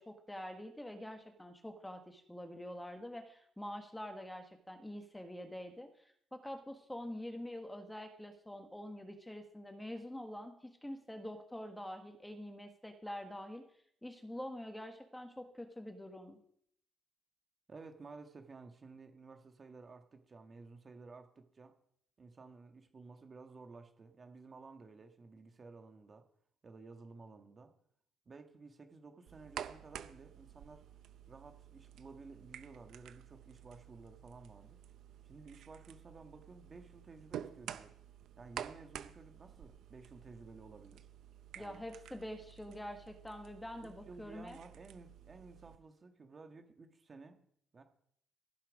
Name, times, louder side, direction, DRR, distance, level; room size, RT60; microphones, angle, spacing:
voice 1, 0.0-13.6 14.0-16.4 41.6-44.6, left 1 dB, 10° left, 5 dB, 1.4 m, -46 dB
voice 2, 17.7-21.7 22.2-26.2 26.6-27.7 28.2-30.9 31.3-34.8 35.2-37.9 38.4-41.1 41.5-41.8 43.8-47.4 47.7-47.8, right 4 dB, 35° right, 6 dB, 1.5 m, -54 dB
sound 1, 29.3-45.8, right 10 dB, 75° right, 0.6 m, -51 dB
16.0 x 5.8 x 5.0 m, 0.66 s
cardioid pair, 90°, 0 cm